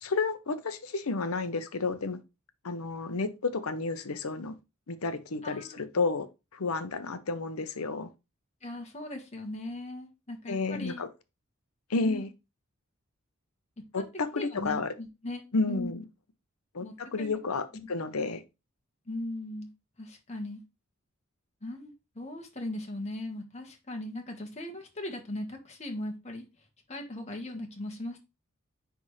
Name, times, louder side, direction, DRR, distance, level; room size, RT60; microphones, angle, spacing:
voice 1, 0.0-2.2 2.6-4.5 4.9-6.3 6.5-8.1 10.5-11.1 11.9-12.3 13.9-14.9 15.5-16.0 16.7-18.4, left 3 dB, 80° left, 0.8 m, -31 dB
voice 2, 5.4-5.8 8.6-11.0 12.0-12.2 13.8-14.0 14.3-15.4 15.7-15.9 16.8-17.3 17.7-17.9 19.1-19.7 20.0-20.6 21.6-26.5 26.9-28.2, left 1 dB, 30° left, 1.4 m, -38 dB
9.6 x 3.5 x 3.2 m
head